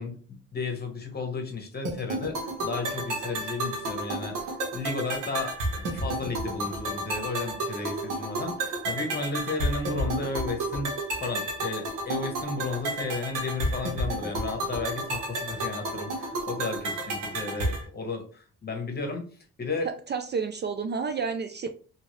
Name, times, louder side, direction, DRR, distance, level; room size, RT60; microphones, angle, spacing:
voice 1, 0.0-10.9 11.2-19.2 19.6-19.9, left 3 dB, 35° left, 4 dB, 1.1 m, -33 dB
sound 1, 1.9-17.9, right 1 dB, 90° right, 1.1 m, -31 dB
voice 2, 19.8-21.7, right 5 dB, 35° right, 8 dB, 0.4 m, -30 dB
2.9 x 2.7 x 3.0 m, 0.41 s
cardioid pair, 90°, 30 cm